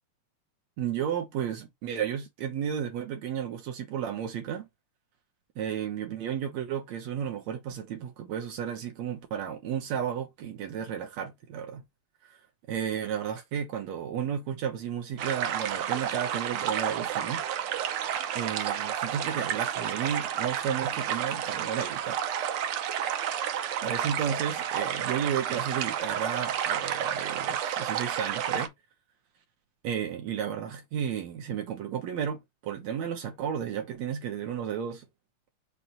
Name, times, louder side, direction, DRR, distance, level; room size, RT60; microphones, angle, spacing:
voice 1, 0.8-4.7 5.6-11.8 12.2-12.4 12.7-17.4 17.7-17.9 18.4-22.2 23.8-28.7 29.8-35.1, right 8 dB, 70° right, 2.4 m, -33 dB
sound 1, 15.2-28.7, right 9 dB, 90° right, 1.2 m, -31 dB
6.1 x 2.8 x 5.5 m
omnidirectional pair, 3.4 m